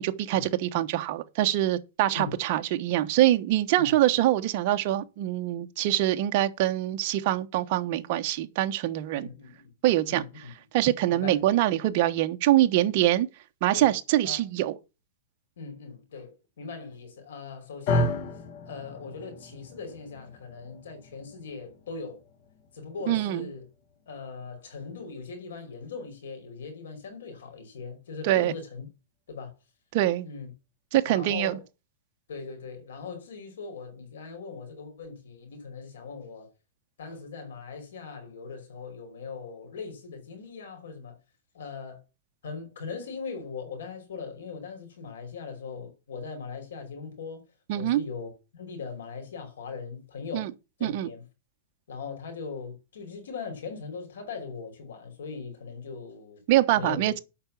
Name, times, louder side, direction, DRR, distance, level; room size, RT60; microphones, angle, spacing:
voice 1, 0.0-9.3 9.8-10.2 10.7-13.3 13.6-14.7 23.1-23.5 28.2-28.5 29.9-30.3 30.9-31.6 47.7-48.0 50.3-50.5 50.8-51.1 56.5-57.2, right 14 dB, 40° right, 1.1 m, -24 dB
voice 2, 9.2-9.7 10.1-10.5 11.1-11.5 13.7-13.9 14.2-14.4 15.6-18.2 18.7-22.2 22.7-23.7 24.1-28.9 29.3-29.5 30.2-30.5 31.0-31.6 32.3-36.5 37.0-41.2 41.5-42.0 42.4-47.4 47.7-50.5 50.8-51.2 51.9-56.4 56.7-57.1, left 5 dB, 85° left, 5.3 m, -40 dB
sound 1, 17.9-26.1, left 1 dB, 40° left, 1.4 m, -35 dB
8.8 x 5.9 x 7.3 m
supercardioid pair, 165°, 0 cm